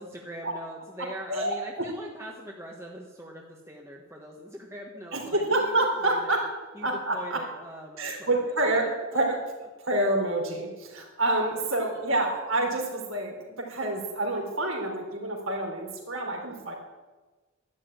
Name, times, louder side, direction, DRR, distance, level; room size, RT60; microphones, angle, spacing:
voice 1, 0.0-6.5 6.7-9.2 11.8-12.0, equal, 10° right, -1 dB, 1.4 m, -42 dB
voice 2, 1.3-1.9 5.1-6.5 6.8-7.4 8.0-8.9 9.1-9.4 9.8-16.7, right 2 dB, 65° right, 1 dB, 3.7 m, -27 dB
12.0 x 11.5 x 9.0 m, 1.2 s
head